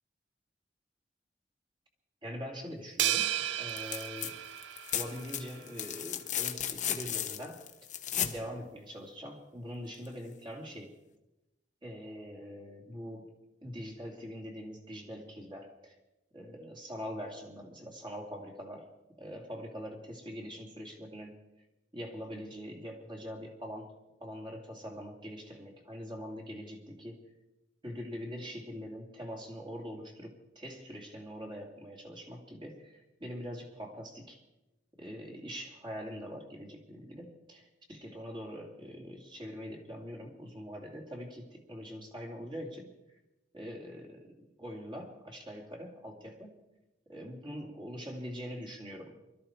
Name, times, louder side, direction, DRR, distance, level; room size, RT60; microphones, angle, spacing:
voice 1, 2.2-4.4 4.9-7.6 8.2-10.9 11.8-13.3 13.6-15.9 16.3-18.9 19.2-21.4 21.9-23.9 24.2-27.2 27.8-34.4 35.0-42.9 43.5-44.3 44.6-46.6 47.1-49.1, equal, 25° right, 0 dB, 2.7 m, -43 dB
sound 1, 3.0-5.5, right 12 dB, 90° right, 0.5 m, -33 dB
sound 2, 3.7-4.3 4.6-8.4 10.1-10.2, left 10 dB, 45° left, 1.1 m, -35 dB
23.0 x 13.0 x 4.5 m, 0.98 s
head